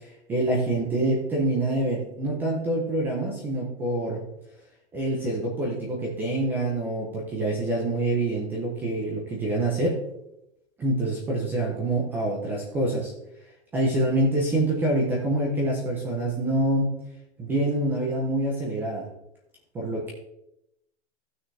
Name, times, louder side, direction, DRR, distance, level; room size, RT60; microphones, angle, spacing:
voice 1, 0.0-4.2 4.9-10.0 10.8-13.1 13.7-17.0 17.4-19.1 19.7-20.1, right 1 dB, 5° right, -2 dB, 0.5 m, -26 dB
15.0 x 6.2 x 3.2 m, 0.82 s
supercardioid pair, 175°, 35 cm